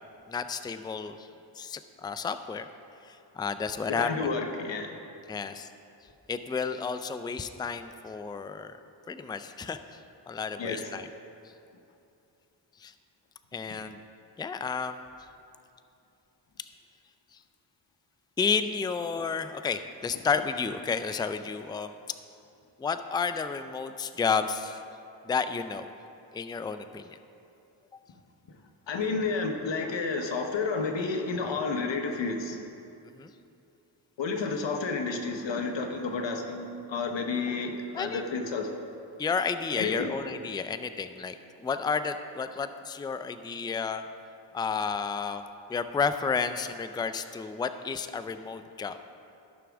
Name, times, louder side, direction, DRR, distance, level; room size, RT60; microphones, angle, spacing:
voice 1, 0.3-1.3 1.6-2.7 3.0-4.3 5.3-5.7 6.3-8.7 9.1-10.0 10.3-11.1 12.8-12.9 13.5-14.0 14.4-15.0 18.4-21.9 22.8-24.8 25.2-25.9 26.3-27.2 33.2-33.3 37.9-38.2 39.2-44.0 44.5-45.4 45.7-49.0, left 5 dB, 10° left, 10 dB, 0.3 m, -31 dB
voice 2, 4.0-5.0 10.6-10.9 28.9-32.6 34.2-38.7 39.7-40.1, left 4 dB, 70° left, 4 dB, 1.0 m, -31 dB
14.5 x 6.1 x 3.5 m, 2.7 s
cardioid pair, 60°, 46 cm